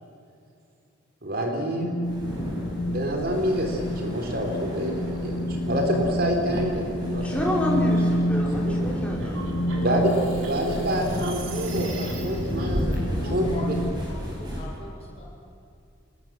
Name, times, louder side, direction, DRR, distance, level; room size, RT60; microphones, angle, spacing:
voice 1, 1.2-1.9 2.9-7.2 7.6-7.7 8.6-8.8 9.7-10.1 10.4-12.9 13.3-13.8, equal, 50° right, 2 dB, 3.9 m, -27 dB
sound 1, 1.8-14.0, equal, 60° left, 0.7 m, -29 dB
sound 2, 2.0-14.6, equal, 20° right, 7.8 m, -33 dB
voice 2, 7.2-9.5, left 1 dB, 5° left, -3 dB, 5.1 m, -28 dB
sound 3, 9.2-13.0, right 1 dB, 75° right, 4.4 m, -37 dB
voice 3, 9.8-10.3 10.5-10.9 11.2-11.3 12.8-15.2, left 1 dB, 30° left, -2 dB, 6.7 m, -38 dB
26.5 x 20.5 x 7.6 m, 2.4 s
head